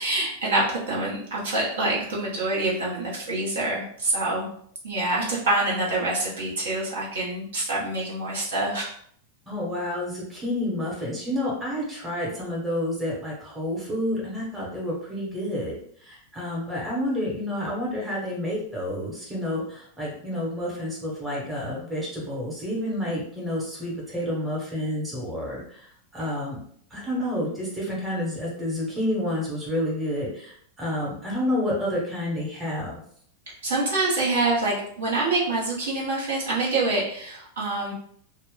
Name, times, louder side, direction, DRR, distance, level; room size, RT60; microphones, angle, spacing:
voice 1, 0.0-4.5 4.8-8.9 33.6-37.9, right 2 dB, 60° right, -5 dB, 1.0 m, -26 dB
voice 2, 9.5-25.9 26.1-26.6 26.9-33.0, left 1 dB, 10° right, -4 dB, 1.1 m, -29 dB
2.4 x 2.2 x 3.8 m, 0.63 s
figure-of-eight pair, 90°, 0 cm